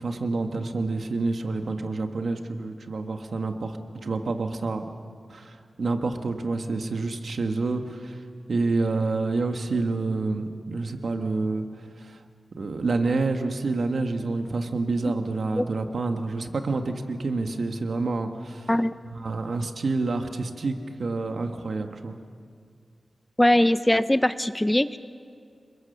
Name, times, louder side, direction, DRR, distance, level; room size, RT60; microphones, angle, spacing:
voice 1, 0.0-3.8 4.0-4.8 5.3-8.2 8.5-12.2 12.5-18.7 19.0-22.1, right 3 dB, 65° right, 5 dB, 1.6 m, -28 dB
voice 2, 23.4-25.0, left 1 dB, 10° left, 13 dB, 0.5 m, -21 dB
28.0 x 22.5 x 6.8 m, 2.2 s
wide cardioid pair, 120°, 0 cm